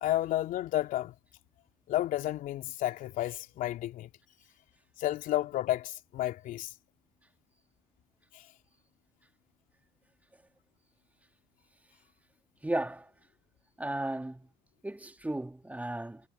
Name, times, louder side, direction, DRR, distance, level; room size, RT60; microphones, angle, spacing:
voice 1, 0.0-1.1 1.9-4.1 5.0-6.7, left 14 dB, 60° left, 3.1 m, -31 dB
voice 2, 12.6-13.1 13.8-14.4 14.8-16.2, right 1 dB, 10° right, 2.4 m, -34 dB
hypercardioid pair, 60°, 16 cm